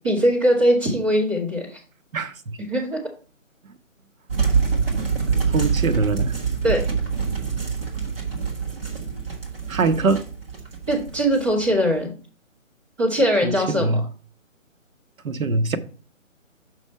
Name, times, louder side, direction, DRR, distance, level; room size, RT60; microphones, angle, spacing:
voice 1, 0.0-1.8 2.7-3.0 6.6-6.8 10.9-12.1 13.0-13.9, equal, 25° right, 2.6 m, -21 dB
voice 2, 2.1-2.6 5.5-6.3 9.7-10.2 13.4-14.0 15.2-15.8, right 3 dB, 80° right, 1.0 m, -23 dB
sound 1, 4.3-11.9, right 5 dB, 45° right, 1.5 m, -25 dB
6.2 x 5.4 x 4.4 m
hypercardioid pair, 170°, 40 cm